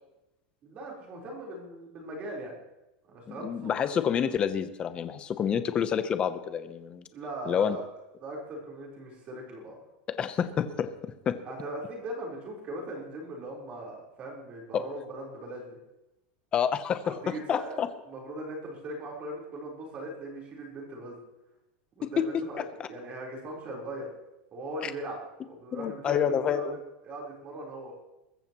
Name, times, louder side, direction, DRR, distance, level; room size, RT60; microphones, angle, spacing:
voice 1, 0.6-2.6 3.1-3.9 7.1-7.8 8.2-9.8 11.4-15.8 17.0-21.2 21.9-24.1 24.5-26.8 27.0-27.9, right 1 dB, 25° right, -2 dB, 4.0 m, -39 dB
voice 2, 3.3-7.0 7.5-7.8 10.2-11.3 14.7-14.8 16.5-17.2 17.5-17.9 22.0-22.1 22.8-22.9 24.8-24.9 25.7-26.8, left 8 dB, 20° left, 11 dB, 0.7 m, -28 dB
22.0 x 14.5 x 3.0 m, 0.92 s
supercardioid pair, 175°, 6 cm